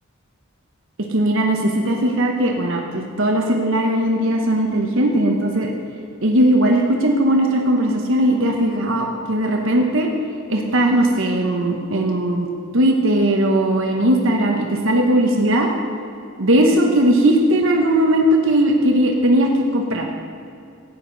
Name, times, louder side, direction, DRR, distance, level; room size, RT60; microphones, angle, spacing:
voice 1, 1.1-5.7 6.2-10.1 10.5-12.5 12.7-15.7 16.4-20.1, right 1 dB, 65° right, 1 dB, 1.1 m, -18 dB
16.0 x 9.6 x 4.0 m, 2.5 s
head